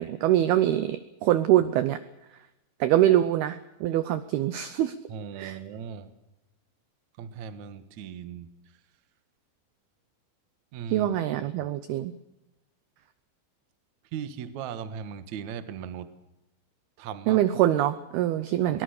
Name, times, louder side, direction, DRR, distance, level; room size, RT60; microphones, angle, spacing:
voice 1, 0.0-2.0 2.8-4.9 5.4-5.6 10.9-12.1 17.3-18.8, right 13 dB, 80° right, 12 dB, 2.3 m, -24 dB
voice 2, 5.1-6.1 7.2-8.5 10.7-11.1 14.1-16.1 17.0-17.4 18.7-18.8, right 7 dB, 65° right, 10 dB, 1.9 m, -38 dB
23.5 x 19.0 x 6.6 m, 0.94 s
omnidirectional pair, 5.6 m